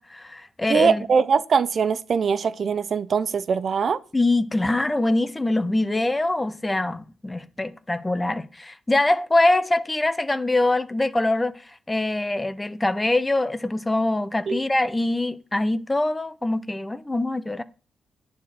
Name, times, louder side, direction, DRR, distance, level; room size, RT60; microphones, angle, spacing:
voice 1, 0.0-1.1 4.1-11.6 11.9-17.6, left 2 dB, 15° left, 0.5 m, -23 dB
voice 2, 0.7-4.0 14.5-14.6, right 6 dB, 45° right, 0.5 m, -22 dB
9.6 x 4.3 x 7.3 m
cardioid pair, 125°, 0 cm